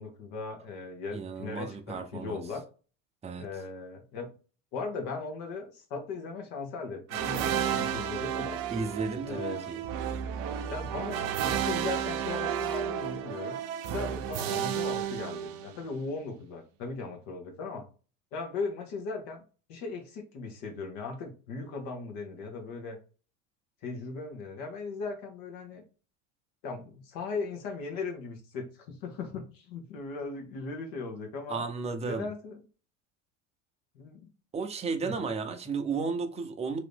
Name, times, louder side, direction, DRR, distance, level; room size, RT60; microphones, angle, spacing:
voice 1, 0.0-2.6 3.4-4.3 4.7-8.6 9.3-9.6 10.7-13.6 13.9-17.9 18.3-19.4 19.7-23.0 23.8-25.8 26.6-31.6 32.0-32.6 33.9-34.3 35.0-35.1, left 4 dB, 65° left, 1.0 m, -38 dB
voice 2, 1.1-2.4 3.2-3.5 8.7-9.8 31.5-32.3 34.5-36.8, right 4 dB, 15° right, 0.6 m, -33 dB
sound 1, 7.1-16.0, right 9 dB, 70° right, 0.6 m, -32 dB
3.0 x 2.6 x 3.4 m
hypercardioid pair, 90°, 39 cm